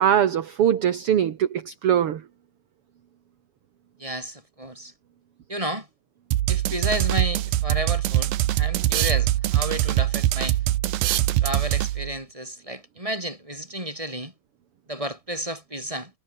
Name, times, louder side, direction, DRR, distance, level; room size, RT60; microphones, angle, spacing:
voice 1, 0.0-2.2, right 9 dB, 50° right, 1.9 m, -21 dB
voice 2, 4.0-4.9 5.5-5.9 6.5-10.6 11.4-14.3 14.9-16.1, right 1 dB, 10° right, 8.0 m, -32 dB
sound 1, 6.3-12.2, right 14 dB, 90° right, 2.9 m, -23 dB
omnidirectional pair, 4.1 m